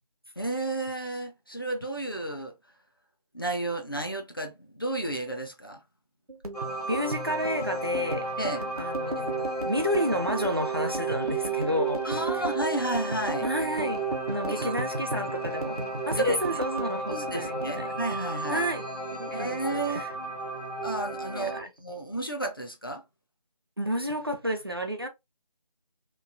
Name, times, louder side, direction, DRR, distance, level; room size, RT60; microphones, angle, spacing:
voice 1, 0.4-2.5 3.3-5.8 8.4-8.7 12.0-13.5 14.4-14.7 16.2-16.4 17.1-18.7 19.3-20.0 20.8-21.5 21.8-23.0, right 1 dB, 35° left, 0.4 m, -32 dB
sound 1, 6.3-18.9 19.1-20.2 20.5-20.8 21.1-21.8, right 2 dB, 65° right, 0.9 m, -37 dB
sound 2, 6.5-21.6, right 3 dB, 80° left, 1.4 m, -33 dB
voice 2, 6.9-8.3 8.8-12.4 13.4-14.0 14.3-15.8 16.1-17.9 18.5-18.8 19.1-20.1 21.3-21.7 23.8-25.1, equal, 40° right, 0.4 m, -30 dB
3.0 x 2.3 x 2.4 m
figure-of-eight pair, 165°, 20 cm